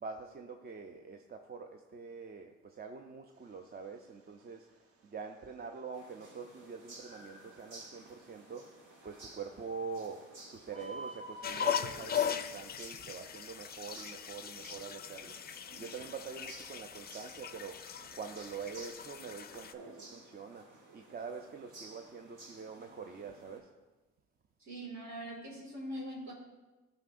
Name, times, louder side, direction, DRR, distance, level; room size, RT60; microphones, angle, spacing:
voice 1, 0.0-4.6 5.1-8.7 9.0-10.2 10.5-15.3 15.8-17.8 18.2-20.6 20.9-23.6, right 5 dB, 35° right, 4 dB, 0.5 m, -45 dB
Bird, 3.3-19.7, right 2 dB, 50° right, 1.0 m, -55 dB
sound 1, 5.9-23.6, right 2 dB, 85° right, 1.8 m, -55 dB
sound 2, 11.4-19.7, left 8 dB, 35° left, 0.4 m, -39 dB
voice 2, 24.6-26.3, right 1 dB, 65° right, -3 dB, 2.1 m, -42 dB
13.5 x 4.8 x 2.5 m, 1.2 s
cardioid pair, 90°, 30 cm